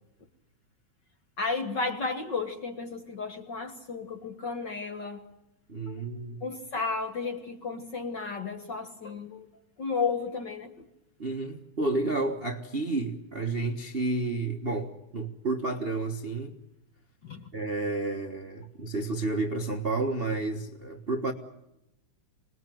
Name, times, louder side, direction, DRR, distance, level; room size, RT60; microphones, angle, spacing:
voice 1, 1.4-5.2 5.9-6.0 6.4-9.5 9.8-10.9 17.2-17.5, left 4 dB, 45° left, 1.6 m, -33 dB
voice 2, 5.7-6.4 11.2-16.6 17.5-21.3, right 2 dB, 40° right, 0.8 m, -31 dB
26.5 x 20.0 x 9.2 m
omnidirectional pair, 3.6 m